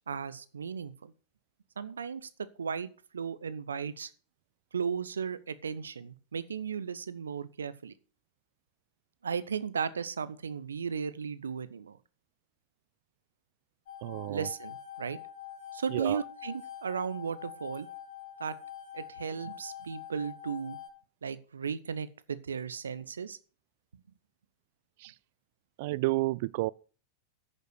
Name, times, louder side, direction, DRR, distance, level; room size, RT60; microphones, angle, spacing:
voice 1, 0.1-1.1 1.8-4.1 4.7-7.9 9.2-12.0 14.3-15.2 15.7-17.9 18.4-18.6 18.9-20.8 21.2-23.4, right 6 dB, 70° right, 0.7 m, -36 dB
sound 1, 13.9-20.9, left 11 dB, 55° left, 3.7 m, -45 dB
voice 2, 14.0-14.5 15.9-16.2 25.0-25.1 25.8-26.7, right 20 dB, 50° right, 0.4 m, -31 dB
9.8 x 6.6 x 6.4 m
figure-of-eight pair, 90°, 0 cm